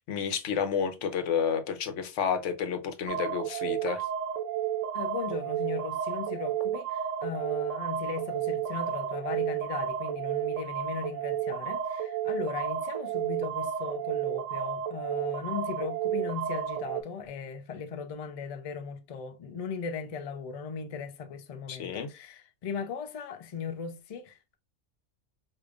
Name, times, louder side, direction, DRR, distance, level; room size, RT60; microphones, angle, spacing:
voice 1, 0.0-4.0 21.7-22.1, left 7 dB, 80° left, 1.1 m, -30 dB
sound 1, 3.1-17.0, right 9 dB, 80° right, 0.9 m, -32 dB
voice 2, 4.9-24.6, left 6 dB, 50° left, 0.4 m, -38 dB
4.9 x 2.6 x 2.3 m
omnidirectional pair, 1.2 m